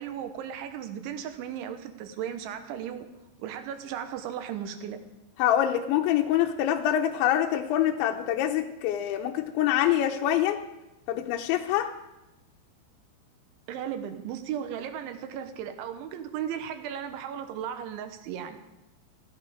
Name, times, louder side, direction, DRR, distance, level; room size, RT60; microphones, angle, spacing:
voice 1, 0.0-3.1 3.4-5.0 13.7-18.6, right 9 dB, 90° right, 8 dB, 3.5 m, -36 dB
voice 2, 5.4-10.6 11.1-11.9, left 11 dB, 80° left, 3 dB, 3.1 m, -25 dB
15.5 x 15.0 x 5.1 m, 0.98 s
omnidirectional pair, 5.3 m